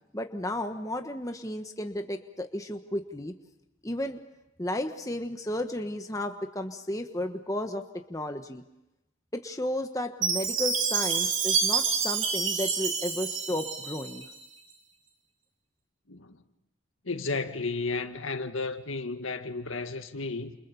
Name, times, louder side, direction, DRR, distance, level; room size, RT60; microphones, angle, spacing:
voice 1, 0.1-3.3 3.8-4.2 4.6-7.8 8.1-8.6 9.3-14.3, left 1 dB, 15° left, 1.2 m, -33 dB
Chime, 10.2-14.3, right 6 dB, 65° right, 2.8 m, -28 dB
voice 2, 17.1-20.6, left 3 dB, 70° left, 1.8 m, -33 dB
29.5 x 28.5 x 7.0 m
head